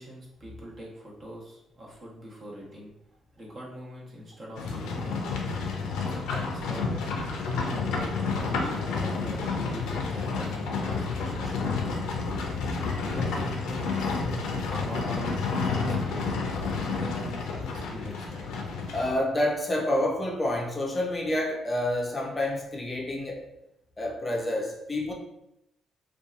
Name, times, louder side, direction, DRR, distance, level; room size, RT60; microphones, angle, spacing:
voice 1, 0.0-2.9 3.3-5.2 5.9-7.0 7.7-11.9 13.0-14.2 14.7-16.4 16.9-17.5 17.7-18.4, right 1 dB, 45° right, -4 dB, 0.9 m, -42 dB
Livestock farm animals working animals, 4.6-19.1, left 4 dB, 90° left, 0.4 m, -30 dB
voice 2, 18.9-23.5 24.0-25.1, left 1 dB, 25° left, -1 dB, 0.5 m, -28 dB
2.7 x 2.3 x 2.3 m, 0.84 s
cardioid pair, 90°, 0 cm